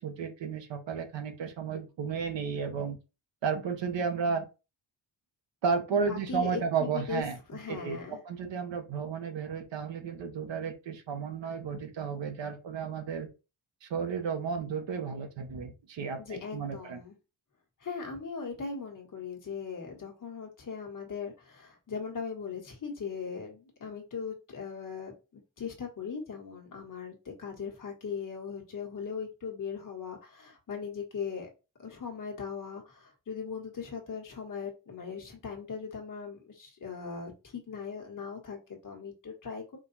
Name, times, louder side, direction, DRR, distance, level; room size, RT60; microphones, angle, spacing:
voice 1, 0.0-3.0 3.4-4.5 5.6-7.4 7.7-13.3 13.8-17.0, right 5 dB, 65° right, 1.0 m, -33 dB
voice 2, 5.9-8.2 15.5-15.7 16.2-17.2 17.8-31.5 31.8-39.8, left 6 dB, 40° left, 1.5 m, -39 dB
5.1 x 2.4 x 3.9 m
wide cardioid pair, 165°, 47 cm